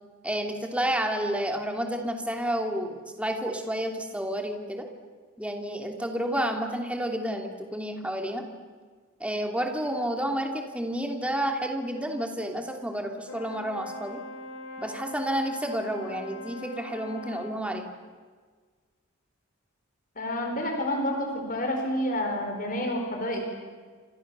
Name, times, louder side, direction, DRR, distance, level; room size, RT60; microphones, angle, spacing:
voice 1, 0.2-4.9 5.4-8.4 9.2-14.2 14.8-17.8, right 1 dB, 5° right, 3 dB, 2.9 m, -30 dB
Brass instrument, 13.3-17.7, left 1 dB, 85° left, 2.8 m, -41 dB
voice 2, 20.2-23.4, left 1 dB, 40° left, 3 dB, 4.5 m, -29 dB
29.5 x 27.5 x 7.0 m, 1.5 s
head